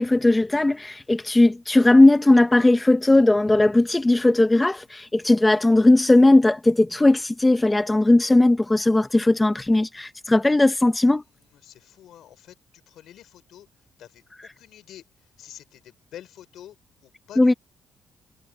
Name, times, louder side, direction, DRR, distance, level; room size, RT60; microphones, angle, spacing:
voice 1, 0.0-11.2 17.4-17.5, left 2 dB, 15° left, 0.9 m, -18 dB
voice 2, 11.5-12.5 12.9-13.7 14.0-15.0 15.4-16.8 17.0-17.6, left 11 dB, 75° left, 5.7 m, -46 dB
cardioid pair, 90°, 0 cm